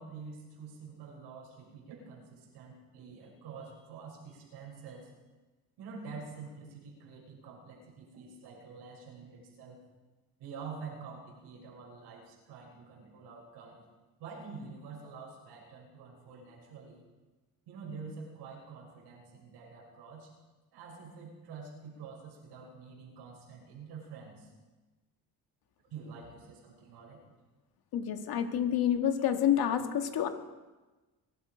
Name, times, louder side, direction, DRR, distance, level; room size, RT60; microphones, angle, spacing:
voice 1, 0.0-5.1 5.8-9.8 10.4-13.8 14.2-17.0 17.7-20.3 20.7-24.5 25.9-27.2, right 5 dB, 90° right, -2 dB, 6.2 m, -47 dB
voice 2, 27.9-30.3, left 9 dB, 65° left, 6 dB, 1.9 m, -28 dB
22.5 x 12.5 x 5.2 m, 1.2 s
cardioid pair, 95°, 39 cm